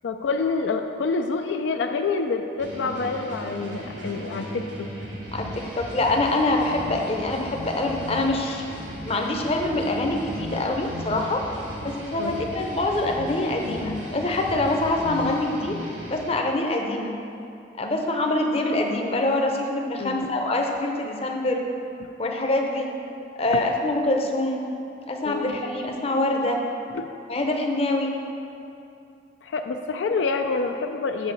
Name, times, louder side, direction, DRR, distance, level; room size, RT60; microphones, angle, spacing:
voice 1, 0.0-4.9 12.2-12.5 20.0-20.3 25.2-25.6 26.9-27.1 29.4-31.3, left 4 dB, 80° left, 5 dB, 0.4 m, -27 dB
sound 1, 2.6-16.3, equal, 80° right, 1.4 m, -36 dB
voice 2, 5.3-8.6 9.0-11.4 11.8-15.8 16.1-17.2 17.8-21.6 22.2-22.9 23.4-24.6 25.1-26.6 27.3-28.1, left 2 dB, 35° left, 2 dB, 0.7 m, -25 dB
7.7 x 3.9 x 6.5 m, 2.6 s
head